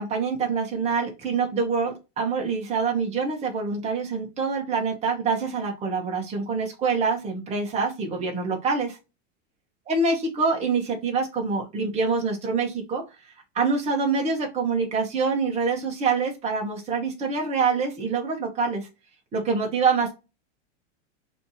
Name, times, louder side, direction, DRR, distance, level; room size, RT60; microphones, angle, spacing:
voice 1, 0.0-9.0 9.9-13.0 13.5-18.9 19.3-20.1, right 4 dB, 20° right, 1 dB, 1.1 m, -25 dB
3.3 x 2.8 x 4.0 m, 0.27 s
supercardioid pair, 160°, 36 cm